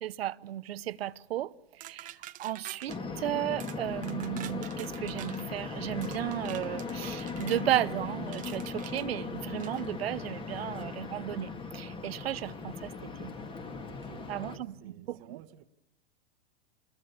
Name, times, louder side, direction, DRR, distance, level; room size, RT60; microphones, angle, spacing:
voice 1, 0.0-1.5 1.8-2.1 2.4-13.3 14.3-15.4, right 13 dB, 85° right, 0.9 m, -34 dB
sound 1, 1.8-3.0 3.6-3.8 4.0-5.5 6.0-7.6 8.3-9.0 9.6-9.8, right 14 dB, 25° right, 0.9 m, -46 dB
sound 2, 2.9-14.6, left 4 dB, 15° left, 1.8 m, -38 dB
voice 2, 13.8-15.6, right 14 dB, 50° right, 1.4 m, -54 dB
27.0 x 21.0 x 7.1 m
supercardioid pair, 140°, 29 cm